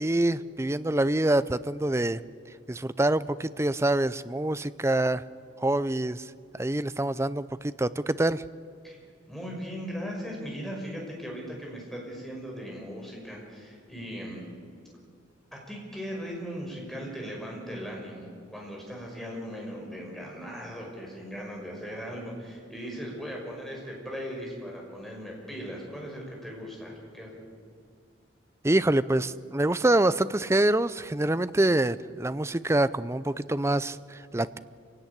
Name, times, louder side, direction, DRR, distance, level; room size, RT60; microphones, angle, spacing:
voice 1, 0.0-2.2 2.7-5.2 5.6-8.4 28.6-34.6, right 1 dB, 15° right, 15 dB, 0.5 m, -26 dB
voice 2, 9.3-14.5 15.5-27.4, equal, ahead, -2 dB, 5.6 m, -38 dB
26.0 x 17.0 x 9.9 m, 2.3 s
head